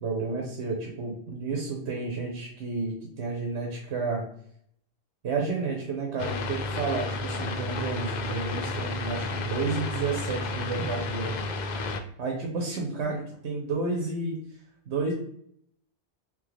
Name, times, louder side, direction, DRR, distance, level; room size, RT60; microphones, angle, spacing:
voice 1, 0.0-4.2 5.2-11.5 12.2-14.4 14.9-15.1, right 4 dB, 85° right, 0 dB, 1.1 m, -31 dB
sound 1, 6.2-12.0, left 3 dB, 60° left, 0.5 m, -32 dB
3.7 x 3.2 x 3.2 m, 0.68 s
omnidirectional pair, 1.1 m